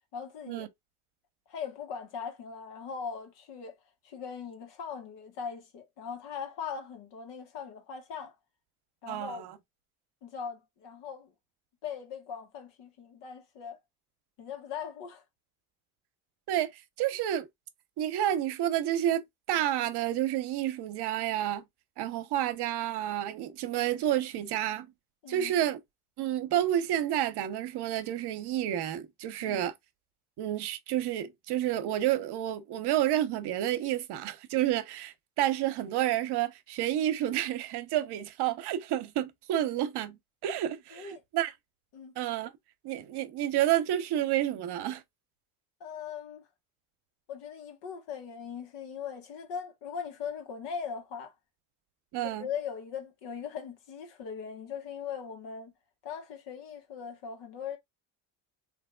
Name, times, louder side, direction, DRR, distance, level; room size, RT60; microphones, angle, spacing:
voice 1, 0.1-0.7 1.5-3.8 4.0-8.3 9.0-9.5 10.2-11.3 11.8-13.8 14.4-15.2 25.2-25.5 29.4-29.7 40.9-41.2 41.9-42.1 45.8-46.4 47.3-51.3 52.2-55.7 56.0-57.8, left 7 dB, 80° left, 1.5 m, -40 dB
voice 2, 9.1-9.6 16.5-17.5 18.0-21.6 22.0-24.9 25.3-25.8 26.2-29.7 30.4-41.5 42.2-42.5 42.8-45.0 52.1-52.5, right 12 dB, 70° right, 0.9 m, -30 dB
3.4 x 2.9 x 2.3 m
supercardioid pair, 90°, 42 cm